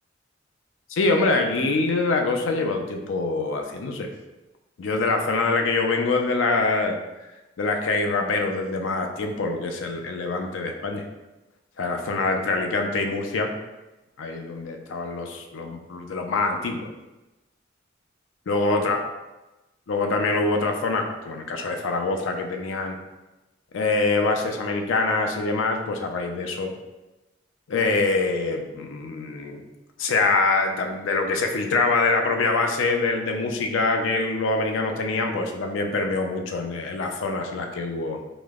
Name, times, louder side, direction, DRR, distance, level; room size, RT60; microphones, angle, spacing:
voice 1, 0.9-4.1 4.8-7.0 7.6-11.0 11.8-13.5 14.2-16.9 18.5-19.0 19.9-23.0 23.7-26.7 27.7-29.6 30.0-38.2, left 3 dB, 85° left, 3 dB, 0.4 m, -24 dB
4.9 x 2.0 x 2.3 m, 1.1 s
head